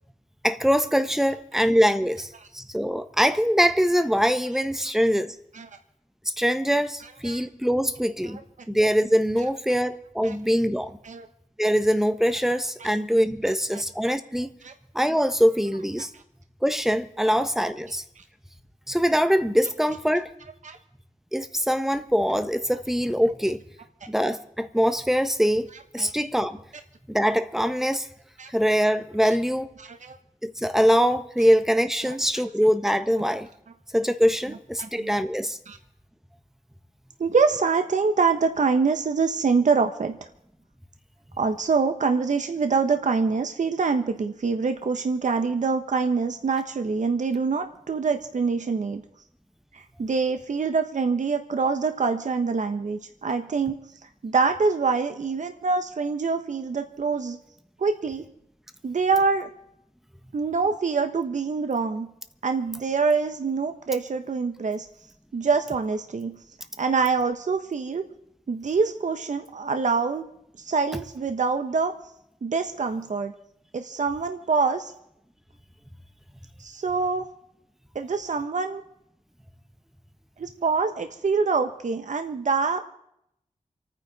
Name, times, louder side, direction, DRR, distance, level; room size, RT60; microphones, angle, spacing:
voice 1, 0.4-2.3 2.5-5.3 6.4-8.4 8.7-11.0 11.6-14.5 14.9-16.1 16.6-18.0 18.9-20.3 21.3-23.6 24.1-25.7 25.9-26.6 27.1-28.0 28.5-29.7 30.4-33.5 33.9-35.6, equal, 5° right, 9 dB, 1.3 m, -23 dB
voice 2, 29.8-30.2 32.0-32.1 33.2-33.3 34.8-35.2 35.7-35.8 37.2-40.2 41.4-49.0 49.7-53.7 54.2-57.4 57.8-58.2 58.8-59.5 60.3-62.1 62.4-64.9 65.3-66.3 66.8-68.0 68.5-70.2 70.6-72.0 72.4-73.3 73.7-74.9 76.6-77.3 77.9-78.8 80.4-82.8, right 4 dB, 75° right, 7 dB, 1.2 m, -25 dB
28.5 x 9.7 x 4.2 m, 0.75 s
wide cardioid pair, 65°, 13 cm